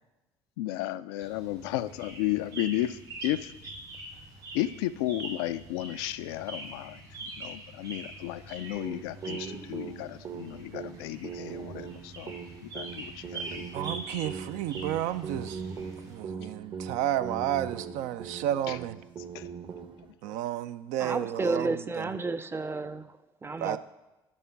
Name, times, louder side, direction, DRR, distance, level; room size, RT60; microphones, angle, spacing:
voice 1, 0.6-3.5 4.5-7.0 7.4-12.4 12.6-13.7 18.7-18.8 19.3-19.5, left 14 dB, 75° left, 0.4 m, -33 dB
sound 1, 1.2-16.2, right 2 dB, 90° right, 2.7 m, -44 dB
sound 2, 8.7-20.1, right 6 dB, 40° right, 0.8 m, -41 dB
voice 2, 13.7-15.6 16.1-19.0 20.2-22.1 23.6-23.8, right 12 dB, 65° right, 0.4 m, -32 dB
voice 3, 21.0-23.8, right 3 dB, 20° right, 0.5 m, -32 dB
11.0 x 3.8 x 5.7 m
hypercardioid pair, 60°, 13 cm